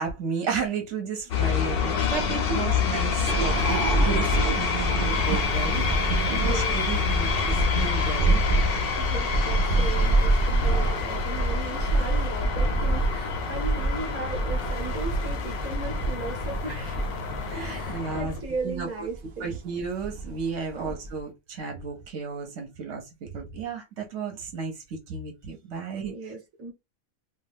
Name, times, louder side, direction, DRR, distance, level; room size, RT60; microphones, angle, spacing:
voice 1, 0.0-8.4 17.5-18.3 18.6-19.1 19.4-26.3, right 5 dB, 60° right, 0.9 m, -33 dB
sound 1, 1.3-18.2, left 6 dB, 65° left, 0.6 m, -28 dB
sound 2, 3.3-21.2, right 2 dB, 80° right, 0.4 m, -27 dB
sound 3, 3.4-18.5 20.3-20.7, left 6 dB, 80° left, 1.0 m, -39 dB
voice 2, 6.3-6.8 9.0-17.0 17.7-19.6 20.7-20.9 26.1-26.7, right 3 dB, 15° right, 0.5 m, -36 dB
2.5 x 2.2 x 3.3 m
omnidirectional pair, 1.5 m